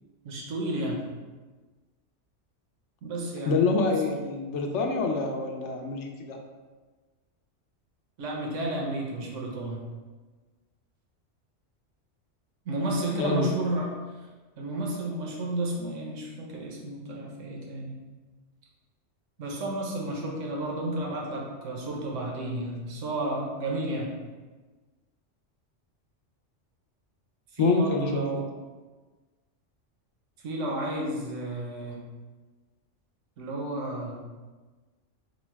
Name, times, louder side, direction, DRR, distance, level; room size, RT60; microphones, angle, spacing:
voice 1, 0.2-1.0 3.0-3.9 8.2-9.8 12.7-13.9 14.6-17.9 19.4-24.1 27.5-28.4 30.4-32.0 33.4-34.2, right 1 dB, 85° right, -1 dB, 1.1 m, -32 dB
voice 2, 3.5-6.4 13.2-13.5 27.6-28.4, left 4 dB, 75° left, 2 dB, 0.9 m, -26 dB
4.6 x 2.1 x 4.4 m, 1.3 s
omnidirectional pair, 1.2 m